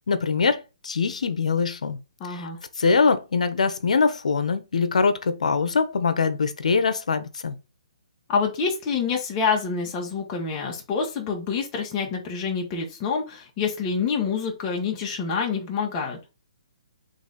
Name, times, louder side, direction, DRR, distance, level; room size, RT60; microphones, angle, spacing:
voice 1, 0.1-2.0 2.3-2.5 2.8-7.5, left 5 dB, 80° left, 0.8 m, -23 dB
voice 2, 2.2-2.6 8.3-16.2, left 5 dB, 25° left, 1.2 m, -27 dB
4.0 x 3.2 x 3.9 m
hypercardioid pair, 155°, 4 cm